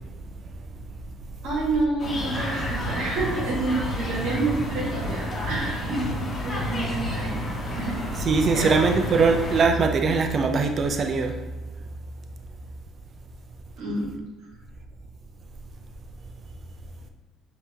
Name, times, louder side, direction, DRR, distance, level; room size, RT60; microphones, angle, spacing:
voice 1, 1.4-7.4 7.8-8.2 8.5-8.8 13.8-14.1, right 2 dB, 70° right, -5 dB, 1.3 m, -28 dB
sound 1, 2.0-9.6, equal, 35° left, 1.2 m, -30 dB
voice 2, 8.2-11.4, right 4 dB, 45° right, 5 dB, 0.5 m, -21 dB
5.2 x 3.0 x 2.8 m, 1.2 s
supercardioid pair, 70°, 0 cm